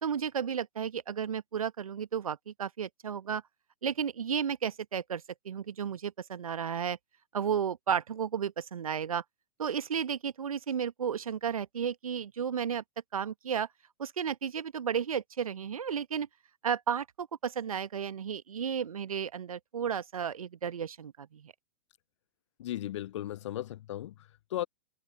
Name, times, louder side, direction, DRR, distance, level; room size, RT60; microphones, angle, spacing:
voice 1, 0.0-3.4 3.8-7.0 7.3-9.2 9.6-12.8 13.1-13.7 14.0-16.3 16.6-21.5, right 7 dB, 65° right, 1.3 m, -33 dB
voice 2, 22.6-24.7, left 13 dB, 50° left, 1.2 m, -36 dB
open air
figure-of-eight pair, 105°, 19 cm